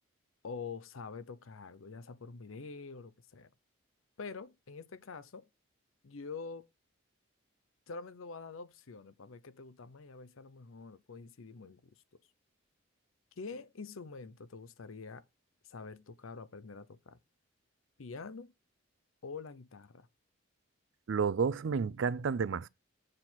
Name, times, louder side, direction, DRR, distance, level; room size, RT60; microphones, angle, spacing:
voice 1, 0.4-3.5 4.2-5.5 6.0-6.7 7.9-11.9 13.4-15.2 15.6-17.2 18.0-18.5 19.2-20.1, left 4 dB, 85° left, 0.7 m, -46 dB
voice 2, 21.1-22.7, right 6 dB, 70° right, 0.4 m, -31 dB
7.5 x 4.5 x 6.0 m
head